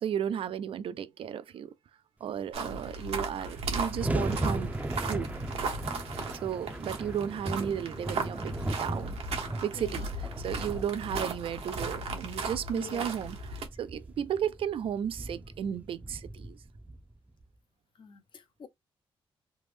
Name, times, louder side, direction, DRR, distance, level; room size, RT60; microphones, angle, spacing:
voice 1, 0.0-1.7 2.2-5.4 6.4-9.2 9.6-16.6, right 9 dB, 65° right, 0.4 m, -34 dB
sound 1, 2.5-13.7, right 3 dB, 80° right, 0.8 m, -36 dB
voice 2, 2.6-2.9 9.7-10.1 12.7-13.1 18.0-18.7, left 6 dB, 55° left, 0.6 m, -46 dB
sound 2, 3.3-17.4, right 1 dB, 15° right, 0.5 m, -38 dB
3.3 x 2.1 x 3.1 m
cardioid pair, 115°, 10 cm